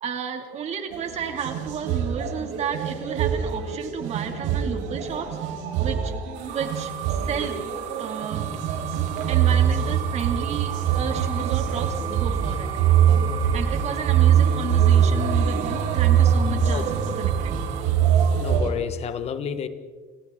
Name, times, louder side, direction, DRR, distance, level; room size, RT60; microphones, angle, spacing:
voice 1, 0.0-5.4 5.8-6.1 6.5-6.9 7.3-7.6 8.0-8.5 9.3-12.7 13.5-17.6, right 7 dB, 35° right, 5 dB, 2.6 m, -32 dB
sound 1, 0.9-18.7, right 8 dB, 85° right, 4.6 m, -23 dB
sound 2, 6.3-18.6, right 6 dB, 50° right, 5.1 m, -46 dB
sound 3, 6.5-17.8, right 13 dB, 70° right, 3.6 m, -36 dB
voice 2, 18.4-19.7, left 8 dB, 35° left, 10 dB, 1.4 m, -30 dB
29.5 x 27.0 x 3.8 m, 1.5 s
cardioid pair, 175°, 19 cm